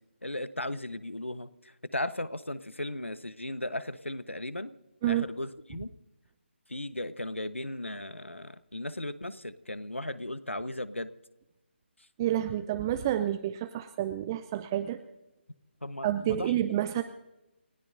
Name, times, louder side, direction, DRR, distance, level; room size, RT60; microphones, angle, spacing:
voice 1, 0.2-4.7 5.0-5.9 6.7-11.1 15.8-16.5, left 1 dB, 85° left, 13 dB, 1.1 m, -36 dB
voice 2, 12.2-15.0 16.0-17.0, right 12 dB, 20° right, 10 dB, 0.5 m, -29 dB
29.5 x 16.5 x 2.7 m, 0.96 s
figure-of-eight pair, 150°, 6 cm